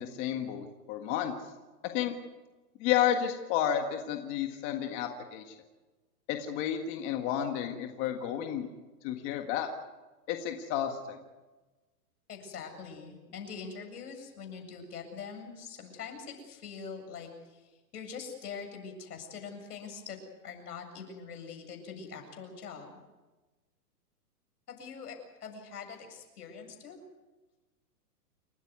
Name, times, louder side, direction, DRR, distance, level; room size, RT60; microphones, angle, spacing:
voice 1, 0.0-1.3 1.9-2.1 2.8-5.5 6.3-8.7 9.0-9.7 10.3-11.2, left 10 dB, 25° left, 5 dB, 1.7 m, -31 dB
voice 2, 12.3-17.6 17.9-20.2 20.4-22.9 24.7-27.0, left 6 dB, 70° left, 4 dB, 7.9 m, -43 dB
29.0 x 14.5 x 9.5 m, 1.2 s
hypercardioid pair, 160°, 48 cm